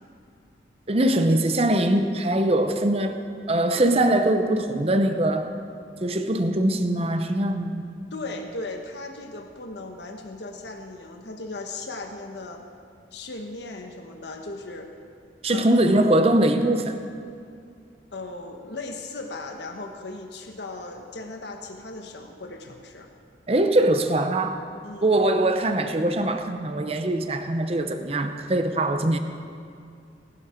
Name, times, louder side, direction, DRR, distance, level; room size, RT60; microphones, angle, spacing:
voice 1, 0.9-3.2 3.5-5.5 6.0-8.1 15.4-17.0 23.5-24.6 25.0-29.2, right 1 dB, 35° right, 7 dB, 0.7 m, -22 dB
voice 2, 8.1-12.6 13.1-14.9 15.5-15.8 18.1-23.1 24.8-25.1, left 2 dB, 75° left, 3 dB, 1.2 m, -37 dB
19.5 x 12.0 x 4.5 m, 2.4 s
head